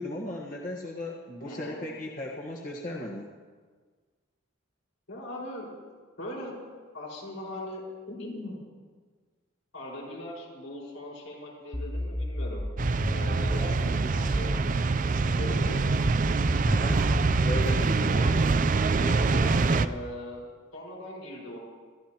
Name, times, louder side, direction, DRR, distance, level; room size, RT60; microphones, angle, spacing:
voice 1, 0.0-3.3 16.6-17.0 17.4-18.2, left 1 dB, 40° left, -3 dB, 1.4 m, -36 dB
voice 2, 1.4-1.8 5.1-5.8 6.2-6.7 6.9-8.6 9.7-12.6 13.1-15.9 18.1-18.4 19.0-20.4 20.7-21.6, left 1 dB, 80° left, -4 dB, 5.1 m, -39 dB
sound 1, 11.7-14.7 15.2-18.2, left 1 dB, 10° left, 0.6 m, -33 dB
sound 2, 12.8-19.9, right 3 dB, 40° right, 0.4 m, -25 dB
26.5 x 13.5 x 2.9 m, 1.5 s
head